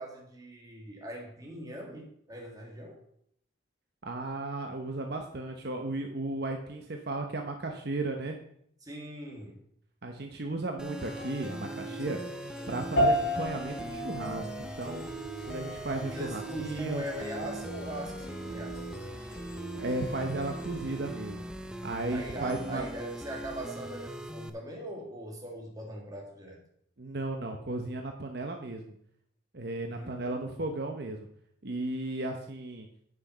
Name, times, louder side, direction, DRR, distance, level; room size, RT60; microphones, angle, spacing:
voice 1, 0.0-3.0 8.8-9.6 16.1-18.8 22.1-26.6 29.9-30.6, right 1 dB, 20° right, -1 dB, 2.3 m, -41 dB
voice 2, 4.0-8.4 10.0-12.2 12.7-15.1 15.5-17.0 19.7-21.4 21.8-22.8 27.0-28.9 29.5-31.3 31.6-32.9, right 2 dB, 55° right, 3 dB, 0.9 m, -35 dB
sound 1, 10.8-24.5, equal, 5° right, 0.5 m, -41 dB
sound 2, 11.0-22.7, right 4 dB, 50° left, 1.4 m, -45 dB
sound 3, 13.0-22.5, equal, 75° left, 3.4 m, -35 dB
9.1 x 6.2 x 5.7 m, 0.68 s
head